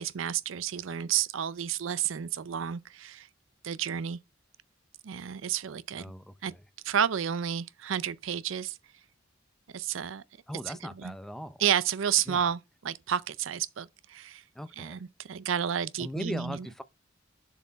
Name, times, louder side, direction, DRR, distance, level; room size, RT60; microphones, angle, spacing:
voice 1, 0.0-3.3 3.6-4.2 5.0-6.1 6.4-6.5 6.8-8.8 9.7-10.2 10.7-10.8 11.0-11.1 11.6-12.6 12.8-14.4 14.8-15.0 15.3-16.6, right 9 dB, 75° right, 0.5 m, -30 dB
voice 2, 5.9-6.6 10.5-11.6 12.3-12.5 14.5-15.0 16.0-16.8, equal, ahead, 0.4 m, -39 dB
7.0 x 4.3 x 4.5 m
head